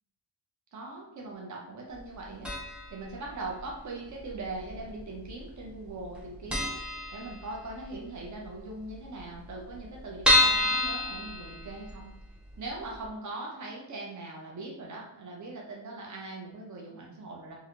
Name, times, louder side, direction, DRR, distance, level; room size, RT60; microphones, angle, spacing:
voice 1, 0.7-2.5 2.9-12.1 12.6-17.5, right 2 dB, 40° right, -1 dB, 0.7 m, -41 dB
sound 1, 2.4-3.0 3.2-3.3 4.3-5.0 5.3-5.4 5.7-5.8 6.1-6.2 6.5-7.8 8.2-8.3 8.6-8.7 8.9-9.0 9.5-12.1 12.5-12.6 13.0-13.1, left 2 dB, ahead, 0.4 m, -27 dB
3.1 x 2.7 x 2.5 m, 0.88 s
wide cardioid pair, 180°, 45 cm